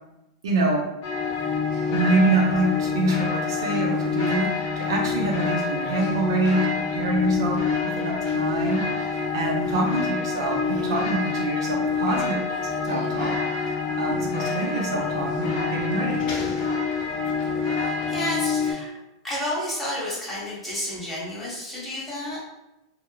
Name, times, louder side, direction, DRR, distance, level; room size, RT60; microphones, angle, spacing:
voice 1, 0.4-0.8 1.9-4.5 4.8-12.4 12.8-13.3 14.0-16.3, right 2 dB, 85° right, -1 dB, 0.6 m, -25 dB
sound 1, 1.0-18.7, left 5 dB, 45° left, 0.7 m, -26 dB
voice 2, 17.7-18.9 19.2-22.4, left 1 dB, 5° left, -8 dB, 1.0 m, -31 dB
2.8 x 2.1 x 2.3 m, 0.94 s
supercardioid pair, 130°, 2 cm